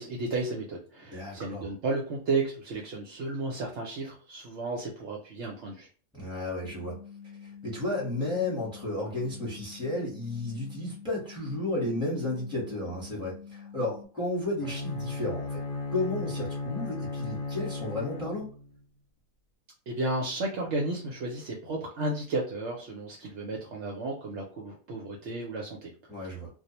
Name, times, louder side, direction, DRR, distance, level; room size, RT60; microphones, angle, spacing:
voice 1, 0.0-5.9 19.9-25.9 26.2-26.4, right 2 dB, 65° right, -1 dB, 0.8 m, -33 dB
voice 2, 1.1-1.7 6.1-7.0 7.6-15.6 15.9-18.5 26.1-26.5, left 2 dB, 5° right, -5 dB, 0.9 m, -33 dB
sound 1, 6.6-14.1, left 7 dB, 60° left, 0.5 m, -47 dB
Bowed string instrument, 14.6-18.8, left 3 dB, 85° left, 1.0 m, -35 dB
2.4 x 2.0 x 2.7 m, 0.40 s
omnidirectional pair, 1.4 m